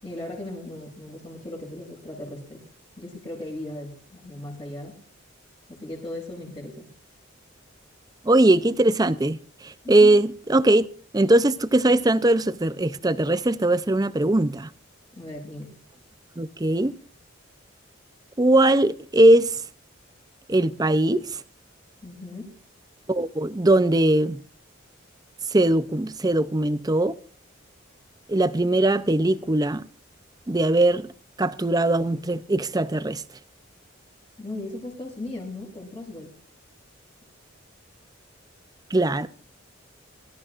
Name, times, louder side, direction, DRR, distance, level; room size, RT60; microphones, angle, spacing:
voice 1, 0.0-2.7 3.0-5.0 5.7-6.9 9.8-10.2 15.1-15.8 22.0-22.6 34.4-36.4, left 1 dB, 25° left, 5.5 m, -37 dB
voice 2, 8.2-10.9 11.1-14.7 16.4-17.0 18.4-19.6 20.5-21.4 23.1-24.4 25.5-27.1 28.3-29.8 30.5-31.1 31.4-33.2 38.9-39.3, right 1 dB, 20° right, 0.5 m, -20 dB
23.5 x 13.5 x 2.5 m
head